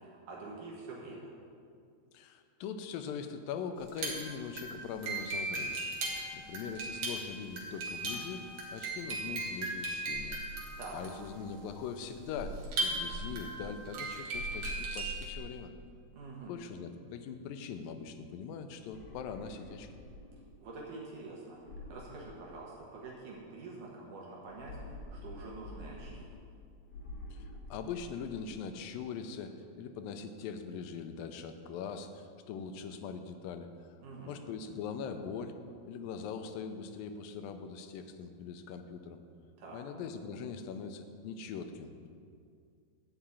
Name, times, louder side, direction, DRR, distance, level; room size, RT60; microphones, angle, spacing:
voice 1, 0.0-1.3 10.8-11.0 16.1-16.5 20.6-21.6 21.9-26.3 34.0-34.4 39.6-39.8, right 3 dB, 65° right, -3 dB, 2.7 m, -46 dB
voice 2, 2.1-5.8 6.3-8.5 8.7-10.4 10.9-15.7 16.5-19.9 27.3-33.7 34.3-35.6 35.9-39.2 39.7-42.1, left 6 dB, 85° left, 8 dB, 2.4 m, -41 dB
sound 1, 3.8-15.4, right 2 dB, 50° right, 2.2 m, -37 dB
sound 2, 18.8-20.7 21.5-23.0 24.4-26.6 26.9-28.6, left 1 dB, 55° left, 1.4 m, -48 dB
11.5 x 5.0 x 8.3 m, 2.3 s
omnidirectional pair, 4.1 m